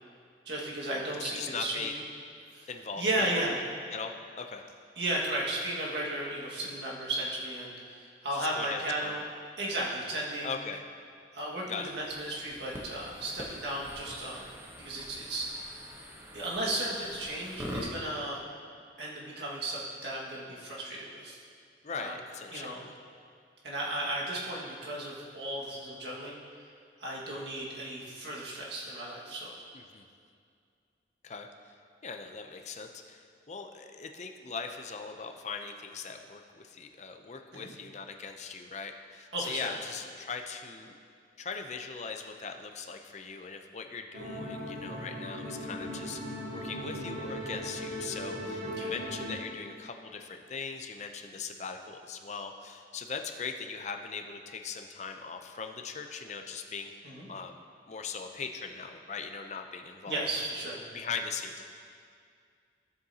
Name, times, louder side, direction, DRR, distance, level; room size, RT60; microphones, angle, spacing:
voice 1, 0.5-1.9 2.5-2.7 3.0-3.6 5.0-9.2 9.6-10.6 11.3-14.5 14.8-15.5 16.3-18.4 19.0-21.4 21.9-22.1 22.5-22.8 23.6-26.4 27.0-29.5 37.5-37.7 39.3-39.7 48.6-48.9 57.0-57.3 60.1-60.8, right 1 dB, 65° right, -5 dB, 1.8 m, -34 dB
voice 2, 1.2-1.9 2.7-3.0 3.3-3.5 3.9-4.7 8.3-9.2 10.4-10.8 11.7-11.9 21.8-22.9 29.7-30.0 31.2-31.7 32.0-41.0 41.4-56.9 57.3-60.5 60.9-61.6, left 5 dB, 40° left, 5 dB, 0.5 m, -40 dB
sound 1, 11.8-17.9, equal, 15° right, 0.9 m, -44 dB
sound 2, 44.1-49.3, equal, 85° right, 2.1 m, -38 dB
13.0 x 7.7 x 2.8 m, 2.3 s
head